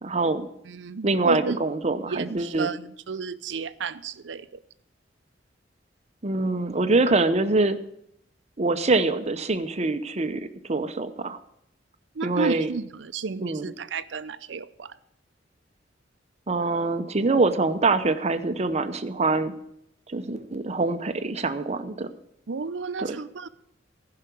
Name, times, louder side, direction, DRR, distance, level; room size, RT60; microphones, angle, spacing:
voice 1, 0.0-0.5 1.0-2.7 6.2-7.8 8.6-10.4 10.7-11.4 12.2-12.7 13.4-13.7 16.5-19.5 20.1-22.1 23.0-23.2, right 3 dB, 35° right, 0.8 m, -24 dB
voice 2, 0.6-1.6 2.1-4.5 12.1-14.9 22.5-23.5, right 4 dB, 75° right, 0.6 m, -32 dB
15.0 x 5.8 x 8.4 m
head